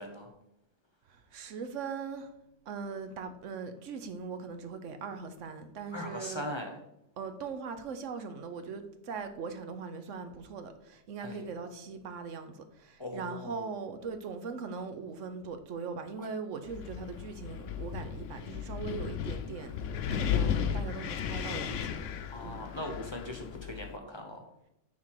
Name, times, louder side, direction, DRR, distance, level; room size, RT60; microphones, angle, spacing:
voice 1, 1.1-2.3 2.7-6.4 7.2-19.7 20.1-22.0 22.4-22.6, right 5 dB, 85° right, 1.2 m, -40 dB
voice 2, 5.9-6.7 11.2-11.5 13.0-13.7 16.2-16.3 22.3-24.5, left 1 dB, 25° left, 1.0 m, -40 dB
Wind, 16.7-24.0, left 8 dB, 90° left, 1.0 m, -35 dB
9.6 x 3.8 x 4.8 m
omnidirectional pair, 1.2 m